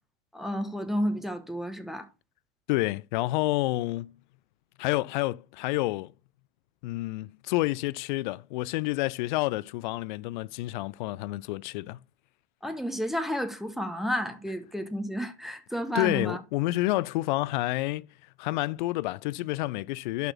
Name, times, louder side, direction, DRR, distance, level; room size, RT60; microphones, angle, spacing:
voice 1, 0.3-2.1 12.6-16.4, equal, ahead, 1.2 m, -31 dB
voice 2, 2.7-4.2 4.8-6.1 6.8-12.0 15.9-18.1 18.4-20.3, left 19 dB, 45° left, 0.4 m, -29 dB
11.5 x 4.2 x 4.4 m
figure-of-eight pair, 85°, 33 cm